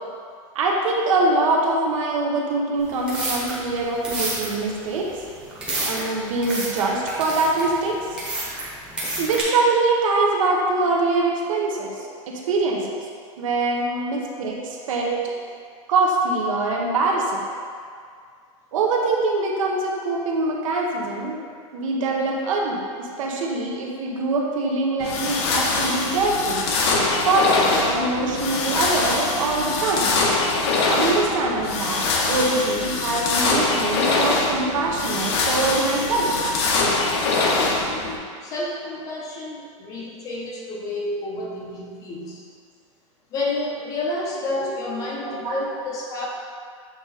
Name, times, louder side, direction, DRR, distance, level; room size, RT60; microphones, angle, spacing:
voice 1, 0.5-5.1 5.8-8.0 9.2-11.9 12.3-13.0 13.4-15.2 15.9-17.4 18.7-21.4 21.7-26.7 27.2-30.2 30.9-36.3 45.3-45.6, right 3 dB, 70° right, -1 dB, 1.2 m, -23 dB
sound 1, 2.9-9.4, right 1 dB, 5° right, 1.0 m, -30 dB
sound 2, 25.0-38.2, left 3 dB, 50° left, 0.8 m, -23 dB
voice 2, 38.4-42.4 43.3-46.3, left 2 dB, 20° left, -3 dB, 0.7 m, -30 dB
7.9 x 3.7 x 4.1 m, 2.1 s
supercardioid pair, 180°, 17 cm